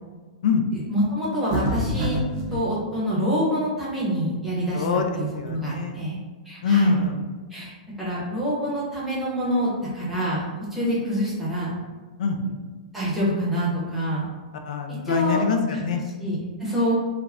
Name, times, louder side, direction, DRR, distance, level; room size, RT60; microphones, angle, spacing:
voice 1, 0.7-2.2 2.5-4.9 5.1-6.2 6.5-7.1 7.5-7.7 8.0-10.4 10.7-11.7 12.9-14.2 15.0-15.4 16.2-17.0, equal, 5° right, -8 dB, 0.7 m, -26 dB
sound 1, 1.5-2.6, equal, 40° right, 0.4 m, -26 dB
voice 2, 4.7-6.0 6.6-7.2 10.8-10.9 12.2-12.4 14.6-16.0, left 5 dB, 80° left, 4 dB, 0.3 m, -24 dB
2.4 x 2.0 x 3.3 m, 1.3 s
supercardioid pair, 170°, 4 cm